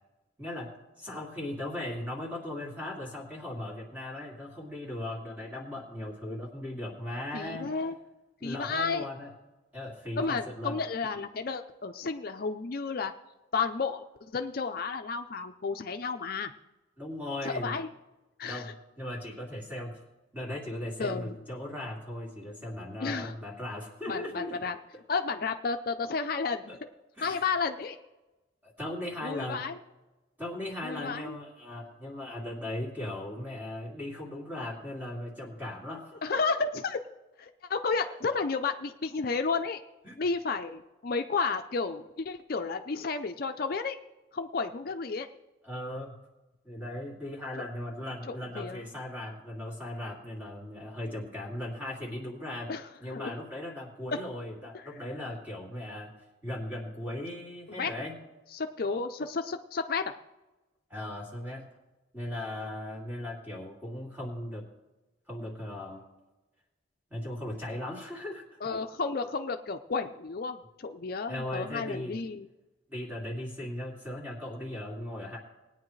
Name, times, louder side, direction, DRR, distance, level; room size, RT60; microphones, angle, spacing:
voice 1, 0.4-7.7 8.4-9.3 9.7-10.8 17.0-17.7 18.4-19.9 20.3-24.6 24.9-25.0 26.7-26.8 27.2-27.5 28.6-29.7 30.4-36.2 38.0-38.4 40.0-40.2 45.6-46.1 46.6-52.7 53.0-56.1 56.4-58.1 60.9-61.7 62.1-64.7 65.3-66.1 67.1-68.4 71.3-72.2 72.9-75.4, left 1 dB, 10° right, -3 dB, 2.4 m, -38 dB
voice 2, 7.3-7.9 8.4-9.0 10.2-13.1 13.5-14.0 14.3-16.5 17.4-17.9 18.4-18.6 21.0-21.3 23.0-23.3 24.1-24.8 25.1-26.8 27.2-28.0 29.2-29.8 30.8-31.4 36.2-37.0 37.4-39.8 40.2-44.0 44.3-45.3 48.3-48.9 52.7-52.8 53.1-53.3 54.7-54.8 57.7-57.9 58.5-60.1 68.6-72.5, left 4 dB, 50° left, 6 dB, 0.5 m, -32 dB
19.5 x 9.5 x 3.2 m, 1.1 s
head